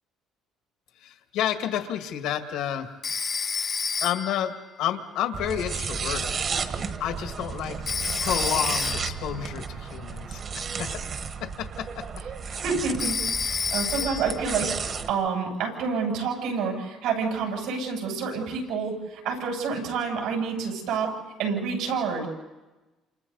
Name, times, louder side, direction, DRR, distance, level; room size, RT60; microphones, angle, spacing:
voice 1, 1.0-2.9 4.0-4.5 4.8-6.3 7.0-7.8 8.2-11.0 11.4-12.0, left 10 dB, 80° left, 6 dB, 1.9 m, -30 dB
Telephone, 3.0-4.5 7.9-9.3 13.0-14.4, left 5 dB, 30° left, 0.7 m, -29 dB
sound 1, 5.3-15.1, right 5 dB, 40° right, 1.3 m, -33 dB
voice 2, 12.5-22.3, right 5 dB, 85° right, 0 dB, 7.8 m, -28 dB
29.0 x 28.0 x 4.1 m, 1.1 s
cardioid pair, 130°, 0 cm